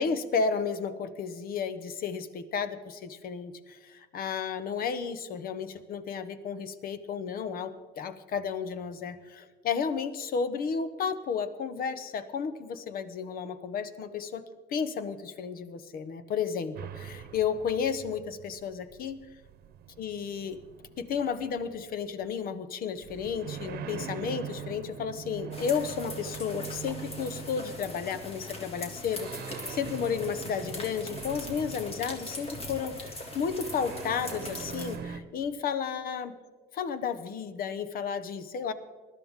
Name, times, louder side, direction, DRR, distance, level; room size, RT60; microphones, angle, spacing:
voice 1, 0.0-14.4 14.7-19.2 20.0-20.6 21.0-36.3 36.7-38.7, left 6 dB, 60° left, 12 dB, 1.0 m, -33 dB
sound 1, 16.8-22.4 23.0-28.5 29.0-32.8 33.4-35.2, right 8 dB, 65° right, 0.9 m, -43 dB
sound 2, 25.5-35.0, left 1 dB, 35° left, 2.4 m, -41 dB
20.5 x 12.0 x 3.7 m, 1.4 s
cardioid pair, 110°, 17 cm